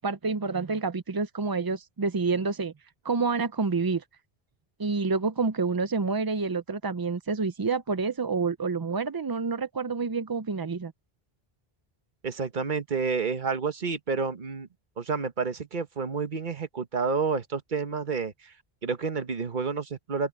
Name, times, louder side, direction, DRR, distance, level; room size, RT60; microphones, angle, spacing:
voice 1, 0.0-2.7 3.0-4.0 4.8-10.9, right 4 dB, 35° right, 0.4 m, -28 dB
voice 2, 12.2-14.7 15.0-18.5 18.8-20.3, right 5 dB, 50° right, 1.4 m, -29 dB
open air
omnidirectional pair, 1.1 m